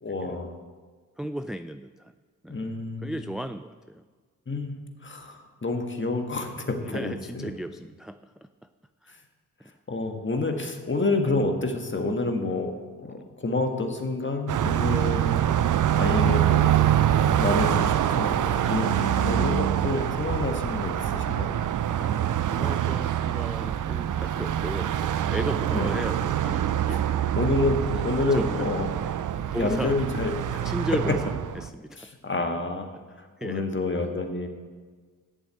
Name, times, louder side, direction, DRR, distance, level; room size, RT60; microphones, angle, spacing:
voice 1, 0.0-0.5 2.5-3.3 4.5-7.5 9.9-12.7 13.0-15.4 15.9-16.7 17.3-21.5 25.7-25.9 27.3-27.8 28.0-28.9 29.5-30.6 32.0-34.5, left 3 dB, 30° left, 5 dB, 1.6 m, -29 dB
voice 2, 1.2-2.1 2.4-2.7 3.0-4.0 6.8-8.3 9.0-9.2 13.1-13.2 21.9-27.4 28.3-28.6 29.1-29.2 29.5-29.9 30.6-31.2 31.6-32.1 33.4-33.6, right 1 dB, ahead, 10 dB, 0.3 m, -35 dB
Car passing by, 14.5-31.7, right 10 dB, 60° right, 0.6 m, -25 dB
8.4 x 7.0 x 8.4 m, 1.5 s
cardioid pair, 60°, 36 cm